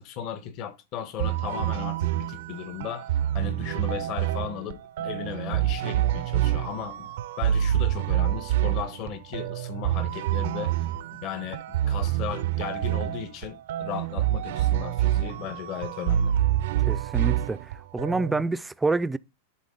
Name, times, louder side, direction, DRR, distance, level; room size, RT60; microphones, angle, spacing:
voice 1, 0.0-10.7 11.2-16.4, left 9 dB, 50° left, 1.1 m, -36 dB
sound 1, 1.2-18.5, right 12 dB, 65° right, 0.5 m, -27 dB
voice 2, 16.8-19.2, right 3 dB, 10° right, 0.4 m, -27 dB
11.0 x 3.7 x 3.8 m
hypercardioid pair, 105°, 0 cm